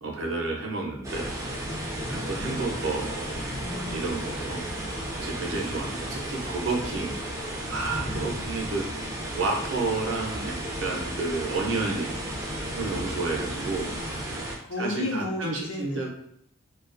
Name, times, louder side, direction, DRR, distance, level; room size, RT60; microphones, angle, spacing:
voice 1, 0.0-1.3 2.1-3.6 3.9-4.6 5.1-7.3 7.7-12.1 12.7-13.9 14.8-16.1, right 3 dB, 60° right, 0 dB, 0.6 m, -31 dB
sound 1, 1.0-14.5, right 1 dB, 15° right, 0.3 m, -33 dB
voice 2, 3.5-4.2 4.5-5.4 7.9-8.1 13.9-14.4 14.7-16.0, left 1 dB, 80° left, 0 dB, 0.6 m, -35 dB
2.3 x 2.3 x 2.4 m, 0.69 s
head